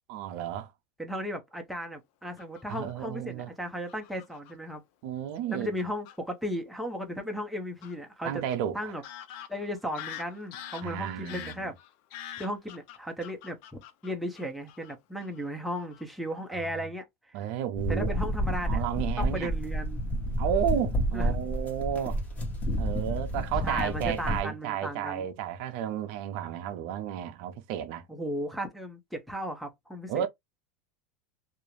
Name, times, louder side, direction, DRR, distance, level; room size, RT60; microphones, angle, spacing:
voice 1, 0.1-0.7 2.7-3.5 5.0-5.7 8.2-8.9 10.8-11.7 17.3-18.2 18.7-19.5 20.4-22.2 22.8-28.1 30.1-30.3, right 10 dB, 60° right, 0.5 m, -32 dB
voice 2, 1.0-4.8 5.5-8.4 8.7-9.0 9.5-11.7 12.4-17.4 17.9-18.9 19.2-20.0 21.1-21.4 23.6-25.3 28.1-30.3, equal, ahead, 0.6 m, -35 dB
Fowl / Bird vocalization bird call bird song, 2.4-3.1 3.9-4.5 5.3-5.4 5.8-6.2 7.8-7.9 8.5-8.6 9.0-14.9 15.2-15.5 15.8-16.0 16.4-16.6, left 11 dB, 60° left, 0.5 m, -45 dB
sound 1, 17.8-24.4, equal, 20° left, 0.9 m, -30 dB
2.4 x 2.0 x 3.0 m
supercardioid pair, 135°, 7 cm